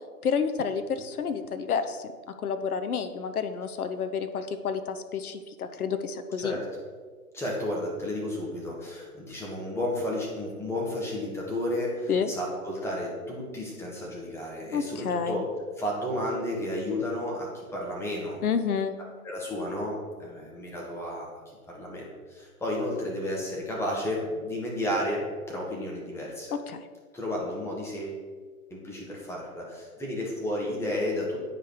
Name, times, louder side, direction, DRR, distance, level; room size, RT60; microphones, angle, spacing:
voice 1, 0.2-2.1 2.4-6.6 12.1-12.3 14.7-15.4 18.4-19.0 26.5-26.9, left 6 dB, 70° left, 9 dB, 0.9 m, -29 dB
voice 2, 7.3-15.4 15.8-18.4 19.2-21.3 21.7-26.5 27.1-28.2 28.7-31.4, left 1 dB, 5° left, -3 dB, 1.6 m, -32 dB
8.8 x 5.1 x 4.7 m, 1.5 s
figure-of-eight pair, 125°, 45 cm